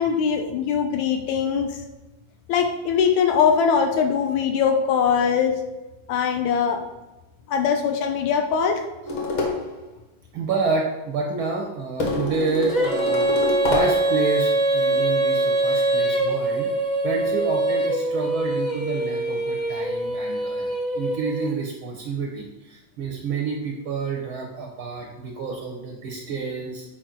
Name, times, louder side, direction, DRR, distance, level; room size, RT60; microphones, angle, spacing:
voice 1, 0.0-1.8 2.5-5.6 6.1-6.9 7.5-8.8, left 6 dB, 80° left, 5 dB, 1.9 m, -21 dB
sound 1, 9.1-9.7 12.0-14.2, left 2 dB, 50° left, 1.7 m, -26 dB
voice 2, 10.3-16.7 17.0-20.7 20.9-26.8, right 4 dB, 75° right, 1 dB, 1.1 m, -29 dB
Female singing, 12.7-21.5, right 2 dB, 20° left, 0.7 m, -23 dB
8.7 x 4.6 x 3.8 m, 1.0 s
omnidirectional pair, 3.4 m